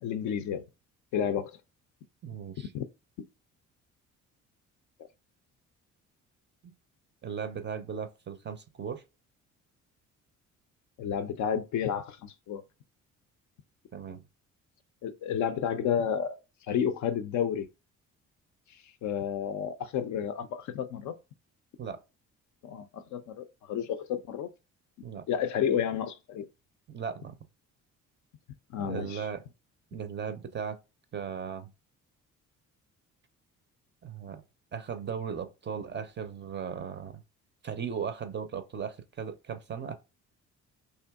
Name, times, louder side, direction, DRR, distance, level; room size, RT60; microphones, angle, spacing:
voice 1, 0.0-0.6 1.1-1.5 2.6-2.9 11.0-12.6 15.0-16.4 16.7-17.7 18.7-21.1 22.6-24.5 25.3-26.5 28.7-29.2, left 8 dB, 50° left, 0.4 m, -31 dB
voice 2, 2.2-2.7 6.6-6.7 7.2-9.0 13.9-14.2 21.8-22.0 25.0-25.2 26.9-27.4 28.8-29.4 29.9-30.8 31.1-31.7 34.0-34.4 34.7-37.2 37.6-39.9, right 7 dB, 30° right, 0.5 m, -37 dB
3.3 x 2.7 x 2.3 m
hypercardioid pair, 45°, 40 cm